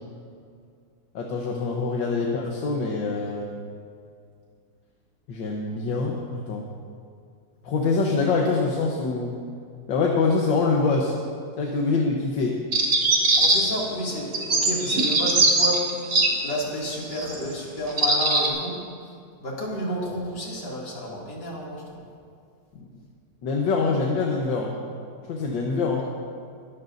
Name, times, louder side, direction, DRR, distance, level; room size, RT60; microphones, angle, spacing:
voice 1, 1.2-3.5 5.3-6.6 7.6-9.3 9.9-11.1 11.6-12.6 22.8-22.9 23.4-24.7 25.2-26.0, left 4 dB, 80° left, -1 dB, 1.8 m, -24 dB
sound 1, 12.7-13.8 14.3-16.3 17.1-17.4 17.9-18.5, right 2 dB, 70° right, 2.2 m, -20 dB
voice 2, 13.3-15.8 16.2-18.7 19.1-19.2 19.4-22.0, equal, 65° left, -4 dB, 3.1 m, -31 dB
23.0 x 11.5 x 2.6 m, 2.2 s
omnidirectional pair, 2.0 m